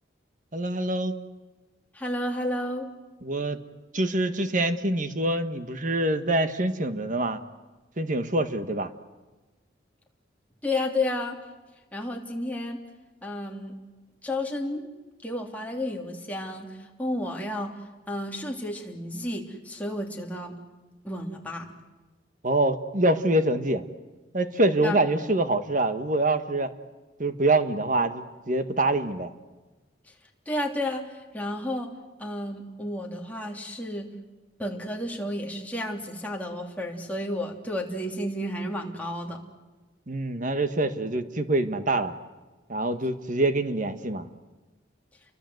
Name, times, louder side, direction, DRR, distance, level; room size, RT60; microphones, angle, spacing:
voice 1, 0.5-1.1 3.2-3.6 3.9-7.4 8.0-8.9 22.4-23.8 24.3-26.7 27.2-29.3 40.1-42.1 42.7-44.3, right 2 dB, 45° right, 9 dB, 1.6 m, -25 dB
voice 2, 1.9-2.9 10.6-11.4 11.9-12.8 13.2-13.7 14.2-14.9 15.2-17.7 18.1-20.6 21.0-21.8 24.8-25.0 30.1-30.2 30.4-31.9 32.2-34.1 34.6-39.4, left 1 dB, 10° left, 0 dB, 3.1 m, -31 dB
30.0 x 24.0 x 8.0 m, 1.2 s
head